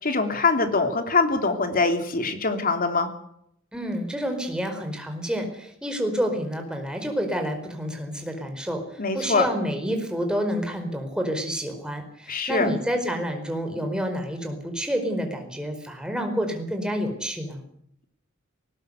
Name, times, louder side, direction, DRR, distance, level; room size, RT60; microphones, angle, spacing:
voice 1, 0.0-3.1 9.0-9.5 12.3-12.7, left 3 dB, 45° left, 7 dB, 3.1 m, -23 dB
voice 2, 3.7-17.6, equal, 5° right, 4 dB, 4.8 m, -29 dB
20.0 x 19.0 x 8.2 m, 0.71 s
head